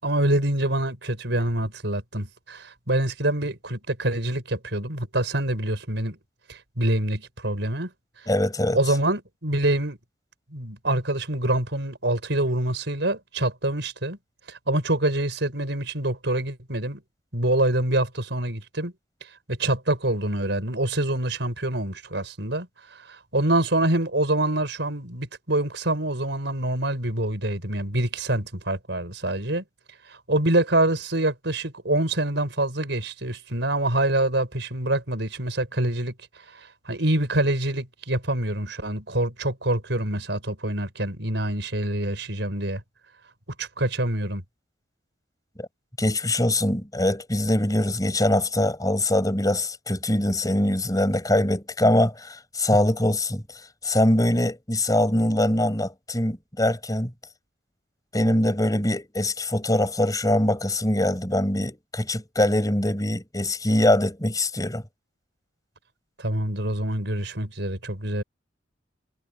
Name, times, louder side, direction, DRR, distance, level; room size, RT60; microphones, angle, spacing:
voice 1, 0.0-6.2 6.5-7.9 8.7-10.0 10.5-14.2 14.5-17.0 17.3-18.9 19.5-29.6 30.1-36.1 36.5-42.8 43.6-44.4 66.2-68.2, right 1 dB, 65° right, 5.4 m, -26 dB
voice 2, 8.3-8.8 45.6-45.7 46.0-53.4 53.8-57.1 58.1-64.8, left 1 dB, 20° left, 5.3 m, -23 dB
head